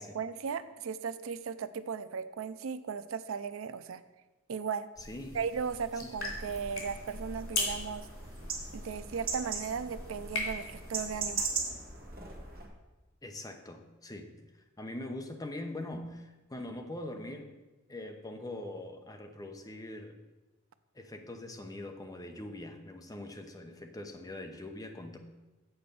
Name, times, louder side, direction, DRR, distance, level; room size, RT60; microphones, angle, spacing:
voice 1, 0.0-4.0 4.5-4.9 5.3-8.1 8.7-11.5, right 6 dB, 75° right, 13 dB, 0.4 m, -36 dB
sound 1, 4.9-11.5, left 2 dB, 90° left, 3.0 m, -40 dB
voice 2, 5.0-5.4 5.9-6.1 13.2-14.3 14.8-17.5 17.9-20.2 20.9-25.2, left 1 dB, 20° left, 4 dB, 0.8 m, -42 dB
sound 2, 6.1-12.7, right 4 dB, 45° right, 1.7 m, -39 dB
8.0 x 5.1 x 6.8 m, 1.1 s
head